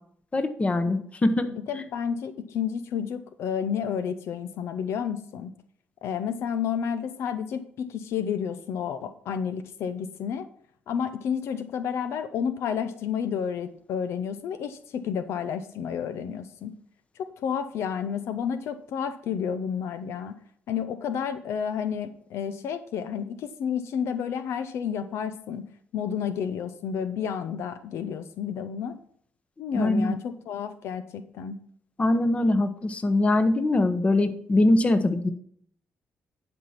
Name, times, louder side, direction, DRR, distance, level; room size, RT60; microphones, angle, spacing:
voice 1, 0.3-1.5 1.7-1.8 29.7-30.2 32.0-35.3, left 2 dB, 30° left, 9 dB, 1.0 m, -22 dB
voice 2, 1.4-5.5 6.0-10.5 10.9-16.7 17.2-20.4 20.7-25.7 25.9-29.0 29.6-31.6, left 7 dB, 80° left, 11 dB, 0.7 m, -31 dB
11.0 x 4.3 x 5.8 m, 0.62 s
cardioid pair, 90°, 4 cm